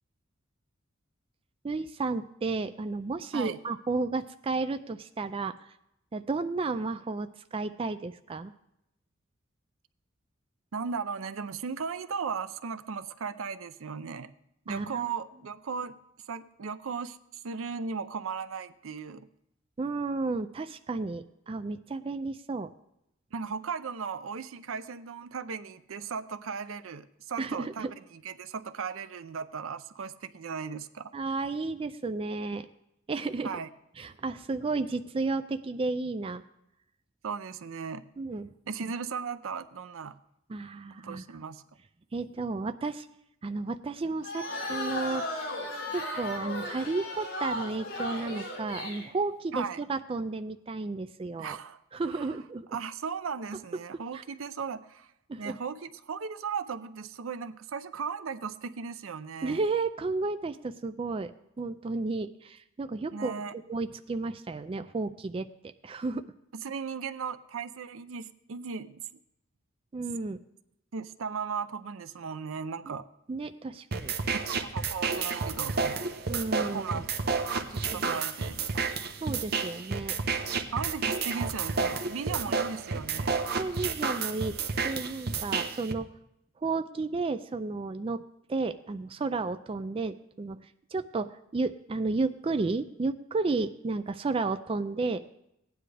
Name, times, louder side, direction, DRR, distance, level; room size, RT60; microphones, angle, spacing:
voice 1, 1.6-5.5 6.1-8.5 14.7-15.1 19.8-22.7 27.4-27.9 31.1-32.7 33.1-33.6 34.0-36.4 38.2-38.5 40.5-41.2 42.1-43.1 43.4-45.2 45.9-51.6 51.9-52.7 54.1-54.2 55.3-55.6 59.4-61.3 61.6-66.2 69.9-70.4 72.9-73.0 73.3-74.2 76.3-77.1 77.7-78.2 79.2-80.2 83.5-86.1 86.6-88.2 88.5-90.6 90.9-95.2, right 3 dB, 25° right, 9 dB, 0.3 m, -32 dB
voice 2, 10.7-14.3 14.7-16.0 16.3-17.2 17.4-19.3 23.3-31.1 33.4-33.7 37.2-38.1 38.7-40.2 41.0-41.6 49.5-49.8 51.4-51.8 52.1-52.3 52.7-55.1 55.4-59.6 63.1-63.5 66.5-69.0 70.9-73.0 74.3-76.1 76.6-77.5 77.8-78.9 80.7-83.4, right 5 dB, 80° right, 12 dB, 0.5 m, -37 dB
sound 1, 44.2-49.1, left 1 dB, 65° left, 4.2 m, -35 dB
sound 2, 73.9-85.9, right 5 dB, 50° right, 0.8 m, -31 dB
16.0 x 9.8 x 3.3 m, 0.80 s
head